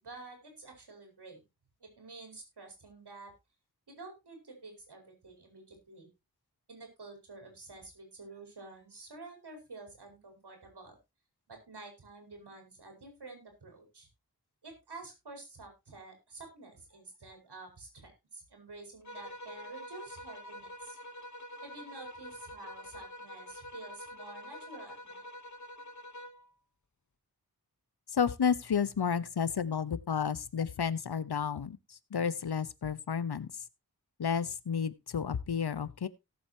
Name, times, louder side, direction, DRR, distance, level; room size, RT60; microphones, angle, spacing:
voice 1, 0.0-1.4 1.8-3.3 3.9-6.1 6.7-11.0 11.5-14.1 14.6-21.0 21.6-25.3, right 3 dB, 85° right, 4 dB, 5.3 m, -50 dB
sound 1, 19.0-26.5, left 1 dB, 45° left, 1.2 m, -46 dB
voice 2, 28.1-33.5 34.2-36.1, left 7 dB, 75° left, 16 dB, 1.0 m, -31 dB
17.5 x 7.9 x 2.8 m, 0.24 s
wide cardioid pair, 60°, 39 cm